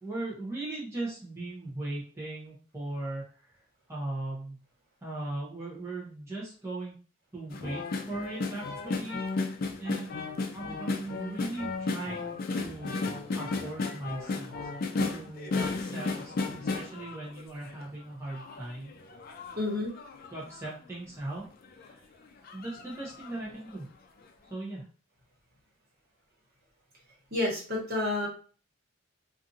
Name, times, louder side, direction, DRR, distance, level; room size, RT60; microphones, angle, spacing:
voice 1, 0.0-3.5 3.9-4.6 5.0-6.9 7.3-7.8 8.1-9.2 9.8-12.9 13.3-14.6 15.1-19.0 20.3-21.4 21.8-22.0 22.4-23.9 24.5-24.8, right 2 dB, 15° right, -6 dB, 0.7 m, -38 dB
sound 1, 7.5-17.9 18.3-20.7 21.3-21.4 21.6-21.9 22.5-23.4 23.7-23.8, left 3 dB, 50° left, 0.4 m, -34 dB
voice 2, 19.6-19.9 27.3-28.3, left 2 dB, 50° right, -3 dB, 1.2 m, -29 dB
2.6 x 2.5 x 2.6 m, 0.40 s
head